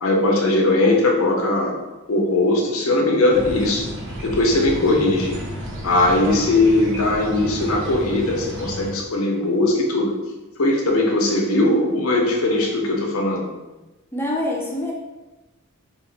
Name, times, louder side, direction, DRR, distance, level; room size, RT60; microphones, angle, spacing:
voice 1, 0.0-1.7 2.1-3.8 4.2-5.4 5.8-10.1 10.6-13.5, left 2 dB, 80° left, 1 dB, 0.7 m, -19 dB
sound 1, 3.3-8.9, right 1 dB, 60° right, 0.7 m, -32 dB
voice 2, 14.1-14.9, left 1 dB, 10° left, -3 dB, 0.5 m, -25 dB
2.9 x 2.4 x 4.0 m, 1.1 s
head